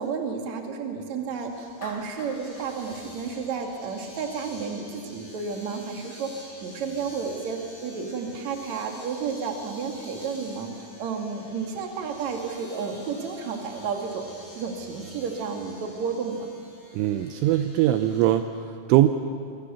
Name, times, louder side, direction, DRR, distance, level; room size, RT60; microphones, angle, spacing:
voice 1, 0.0-16.5, right 5 dB, 45° right, 2 dB, 2.8 m, -32 dB
Domestic sounds home sounds, 1.4-18.3, left 1 dB, 15° left, 5.7 m, -48 dB
Clapping, 1.8-4.1, left 3 dB, 70° left, 5.3 m, -46 dB
voice 2, 16.9-19.1, right 13 dB, 80° right, 8 dB, 3.0 m, -21 dB
27.0 x 23.5 x 7.1 m, 2.4 s
omnidirectional pair, 6.0 m